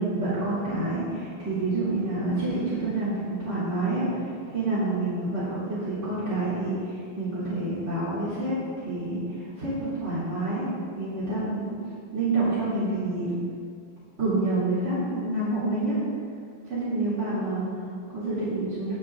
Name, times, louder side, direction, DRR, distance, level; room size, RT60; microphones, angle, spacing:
voice 1, 0.0-10.7 10.9-11.7 12.1-13.3 14.2-16.0 16.6-18.9, right 2 dB, 30° right, -12 dB, 3.5 m, -28 dB
21.5 x 7.2 x 3.8 m, 2.3 s
omnidirectional pair, 2.4 m